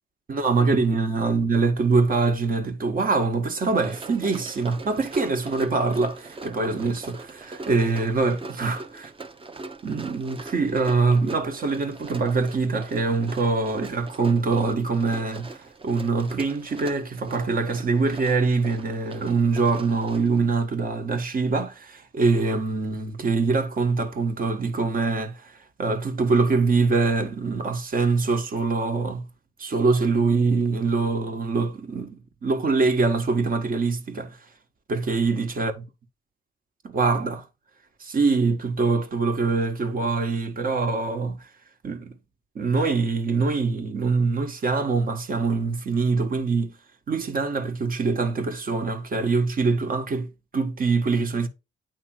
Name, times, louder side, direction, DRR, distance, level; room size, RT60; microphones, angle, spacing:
voice 1, 0.3-9.1 9.8-15.6 15.8-29.3 29.6-34.4 34.9-35.8 36.8-37.5 38.0-41.5 41.8-42.2 42.5-46.7 47.1-51.5, right 4 dB, 45° right, 1.4 m, -24 dB
Run, 3.7-20.4, right 3 dB, 25° right, 0.9 m, -42 dB
9.1 x 3.3 x 4.4 m
cardioid pair, 90°, 20 cm